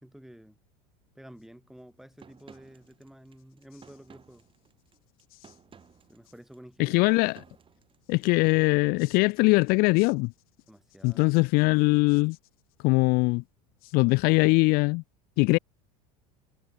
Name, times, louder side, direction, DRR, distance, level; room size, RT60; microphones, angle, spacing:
voice 1, 0.0-0.6 1.2-4.4 6.1-7.1 10.7-11.3, equal, ahead, 2.3 m, -50 dB
sound 1, 1.0-14.6, left 20 dB, 75° left, 5.6 m, -63 dB
sound 2, 2.2-8.5, right 6 dB, 30° right, 3.9 m, -56 dB
voice 2, 6.8-7.4 8.1-10.3 11.0-12.4 12.8-13.4 13.9-15.0 15.4-15.6, left 27 dB, 55° left, 0.4 m, -22 dB
hypercardioid pair, 90°, 18 cm